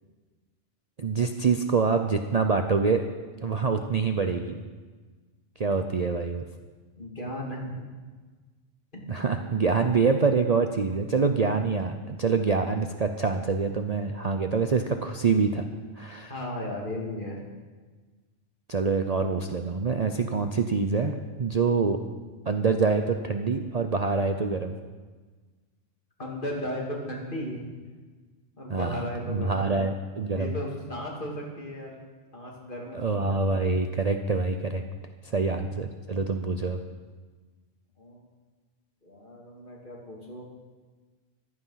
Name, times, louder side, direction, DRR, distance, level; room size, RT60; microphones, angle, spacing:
voice 1, 1.0-3.0 3.4-4.6 5.6-6.4 9.1-15.6 16.0-16.3 18.7-22.0 22.5-24.7 28.7-30.6 32.9-34.8 35.3-36.8, right 4 dB, 40° right, 6 dB, 0.7 m, -25 dB
voice 2, 7.0-7.9 8.9-9.2 16.3-17.4 26.2-27.7 28.6-29.7 30.3-31.9 32.3-33.0 35.2-35.3 38.0-38.2 39.0-40.4, left 1 dB, 45° left, -2 dB, 2.9 m, -35 dB
15.0 x 12.5 x 5.8 m, 1.4 s
omnidirectional pair, 1.3 m